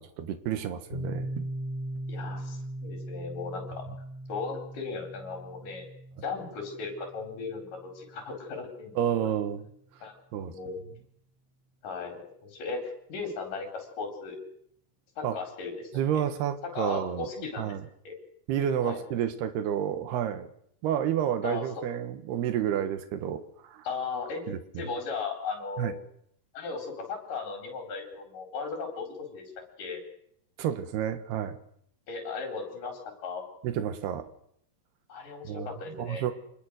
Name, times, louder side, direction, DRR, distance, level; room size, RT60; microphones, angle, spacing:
voice 1, 0.0-1.5 9.0-9.7 10.3-10.6 15.2-15.4 15.9-17.8 18.5-20.5 20.8-23.9 24.5-24.9 25.8-25.9 30.6-31.6 33.6-34.3 35.4-36.3, right 9 dB, 80° right, 10 dB, 3.4 m, -30 dB
Piano, 0.9-8.3, right 1 dB, 10° right, 5.1 m, -39 dB
voice 2, 2.1-3.8 4.3-5.8 6.2-9.2 10.0-10.8 11.8-14.4 15.2-16.2 16.7-17.7 18.1-18.2 18.8-19.0 21.4-21.7 23.8-24.4 24.8-26.0 26.5-29.5 29.8-30.0 32.1-33.4 35.1-36.3, left 4 dB, 55° left, 3 dB, 5.8 m, -37 dB
26.5 x 20.5 x 6.5 m, 0.69 s
omnidirectional pair, 4.7 m